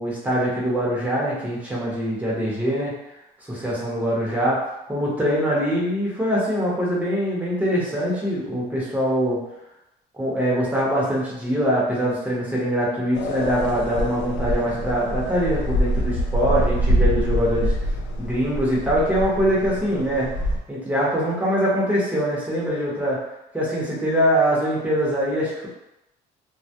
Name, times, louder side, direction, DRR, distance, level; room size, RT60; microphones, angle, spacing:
voice 1, 0.0-2.9 3.4-4.6 4.9-9.4 10.1-17.8 18.2-20.3 20.7-23.2 23.5-25.7, equal, 10° right, -6 dB, 0.7 m, -23 dB
sound 1, 13.1-20.6, equal, 90° left, 0.4 m, -25 dB
2.2 x 2.0 x 2.8 m, 0.89 s
cardioid pair, 130°, 18 cm